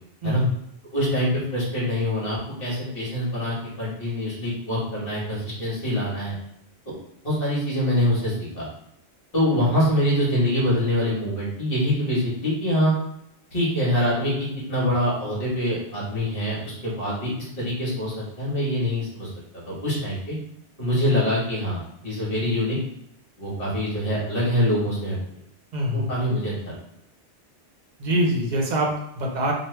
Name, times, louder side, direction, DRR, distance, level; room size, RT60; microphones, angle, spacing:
voice 1, 0.2-0.5 25.7-26.1 28.0-29.5, equal, 45° right, -1 dB, 0.7 m, -24 dB
voice 2, 0.9-6.3 6.8-6.9 7.2-8.7 9.3-12.9 13.5-19.3 19.7-20.3 20.8-22.8 23.4-25.2 25.9-26.7, equal, 55° left, -6 dB, 1.6 m, -24 dB
3.2 x 2.5 x 3.2 m, 0.77 s
omnidirectional pair, 1.2 m